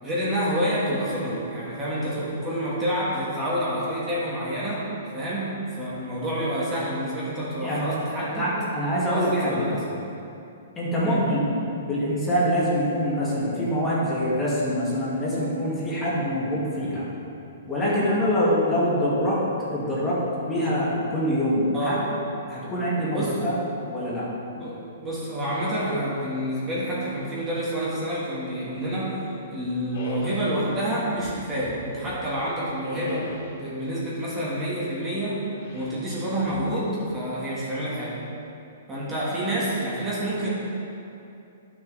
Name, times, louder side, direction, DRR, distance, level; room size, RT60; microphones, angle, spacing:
voice 1, 0.0-8.6 9.1-9.8 11.0-11.2 21.7-22.0 23.1-23.4 24.6-29.2 29.5-35.4 35.7-38.2 38.9-40.5, equal, 15° right, -8 dB, 1.6 m, -28 dB
voice 2, 7.6-7.9 8.3-9.7 10.8-17.1 17.7-22.0 22.5-23.5 23.9-24.3, equal, 15° left, -8 dB, 1.8 m, -25 dB
sound 1, 29.9-30.6 31.1-32.3 32.8-33.6 35.5-36.0 36.4-37.1, left 1 dB, 65° left, 2.1 m, -41 dB
10.5 x 6.2 x 4.0 m, 2.7 s
hypercardioid pair, 160°, 0 cm